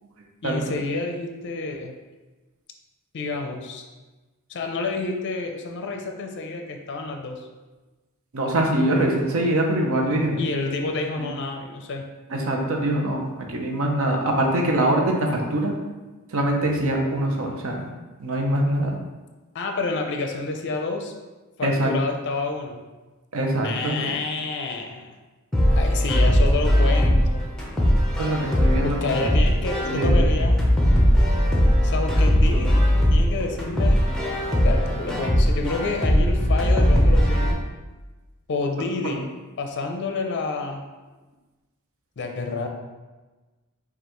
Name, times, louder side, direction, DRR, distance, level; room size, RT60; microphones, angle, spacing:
voice 1, 0.4-2.0 3.1-3.8 4.5-7.5 10.4-12.1 19.5-21.1 21.6-22.8 23.6-25.1 25.8-27.4 28.8-30.6 31.8-32.8 33.1-34.4 34.6-37.6 38.5-39.3 39.6-40.8 42.2-42.7, left 3 dB, 55° left, 4 dB, 0.5 m, -29 dB
voice 2, 8.3-10.4 12.3-15.7 16.3-17.8 18.2-18.9 21.6-22.0 23.3-24.0 28.2-29.2 29.8-30.2 32.5-32.6 39.0-39.2, right 1 dB, 70° right, 1 dB, 0.7 m, -23 dB
sound 1, 25.5-37.5, equal, 5° left, 0.6 m, -19 dB
5.4 x 2.4 x 3.0 m, 1.2 s
head